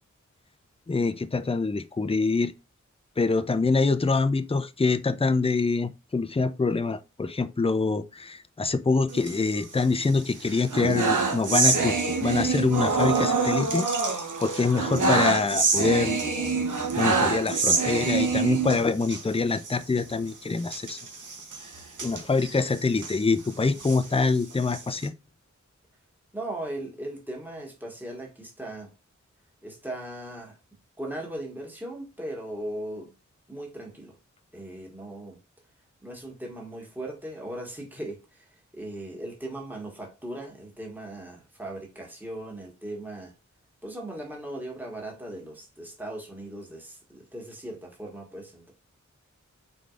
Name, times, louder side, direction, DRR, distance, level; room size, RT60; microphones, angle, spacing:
voice 1, 0.9-2.5 3.2-13.9 14.4-16.3 17.0-21.0 22.0-25.1, left 4 dB, 20° left, 0.5 m, -25 dB
sound 1, 9.1-10.0 10.4-19.2 19.6-19.7 20.0-20.1 20.6-23.2 23.7-25.1, right 4 dB, 80° right, 1.0 m, -26 dB
voice 2, 26.3-28.9 29.6-30.6 31.0-33.1 33.5-34.2 34.5-35.4 36.0-38.5 38.7-43.3 43.8-48.7, right 1 dB, 5° right, 1.6 m, -38 dB
4.7 x 3.9 x 2.5 m
wide cardioid pair, 60°, 30 cm